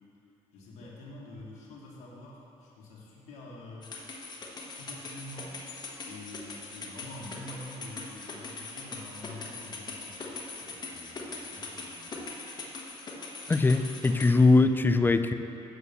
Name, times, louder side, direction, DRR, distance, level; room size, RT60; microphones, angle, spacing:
voice 1, 0.5-3.9 4.7-5.6 6.1-12.3, left 1 dB, 90° left, -5 dB, 1.5 m, -46 dB
sound 1, 3.8-14.3, left 3 dB, 40° left, 1.2 m, -41 dB
voice 2, 13.5-15.3, left 3 dB, 20° left, 9 dB, 0.3 m, -21 dB
8.5 x 4.6 x 6.8 m, 2.7 s
cardioid pair, 105°, 11 cm